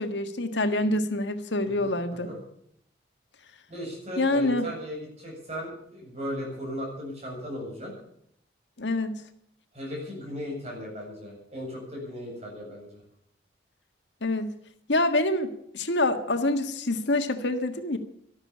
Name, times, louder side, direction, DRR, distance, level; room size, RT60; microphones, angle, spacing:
voice 1, 0.0-2.3 4.2-4.7 8.8-9.2 14.2-14.5 14.9-18.0, left 2 dB, 75° left, 7 dB, 1.6 m, -26 dB
voice 2, 3.7-7.9 9.7-13.0, equal, 35° right, -1 dB, 7.8 m, -36 dB
13.0 x 12.0 x 8.6 m, 0.70 s
head